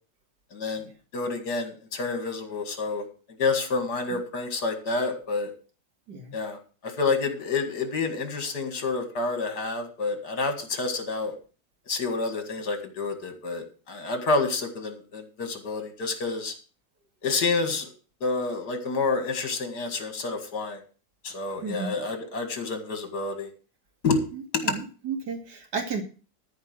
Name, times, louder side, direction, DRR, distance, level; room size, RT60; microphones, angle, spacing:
voice 1, 0.5-0.9 1.1-3.0 3.4-5.5 6.3-6.6 6.8-11.4 11.9-16.5 17.2-17.9 18.2-20.8 21.2-23.5 24.0-24.2 24.5-24.8, left 3 dB, 70° left, 7 dB, 2.6 m, -28 dB
voice 2, 21.6-21.9 24.3-26.0, right 5 dB, 70° right, 4 dB, 2.8 m, -33 dB
13.5 x 5.1 x 7.6 m, 0.37 s
omnidirectional pair, 1.8 m